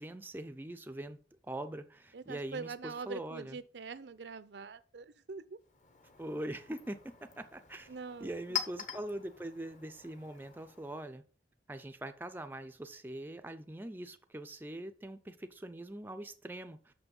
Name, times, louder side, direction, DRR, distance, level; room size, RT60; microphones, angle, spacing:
voice 1, 0.0-3.6 6.2-7.9 8.2-11.2 11.7-16.9, right 1 dB, 10° right, 0.4 m, -43 dB
voice 2, 2.1-5.6 7.9-8.6, right 4 dB, 75° right, 0.5 m, -44 dB
Chink clink, 5.6-11.1, left 9 dB, 45° left, 0.9 m, -44 dB
6.3 x 5.9 x 5.3 m
head